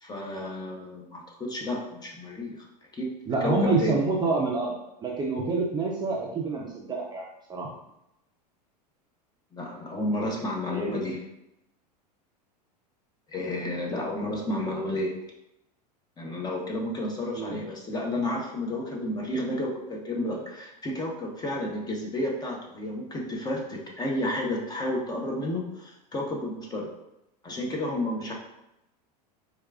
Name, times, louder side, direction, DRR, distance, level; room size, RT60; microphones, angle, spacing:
voice 1, 0.0-2.6 2.9-3.1 3.4-4.0 9.5-11.2 13.3-15.1 16.2-26.9 27.4-28.3, left 1 dB, 20° left, 0 dB, 0.8 m, -31 dB
voice 2, 3.3-4.7 5.0-7.2 7.5-7.7 10.7-11.0 17.3-17.6, right 3 dB, 20° right, -2 dB, 0.5 m, -27 dB
4.6 x 2.3 x 2.4 m, 0.86 s
hypercardioid pair, 110°, 21 cm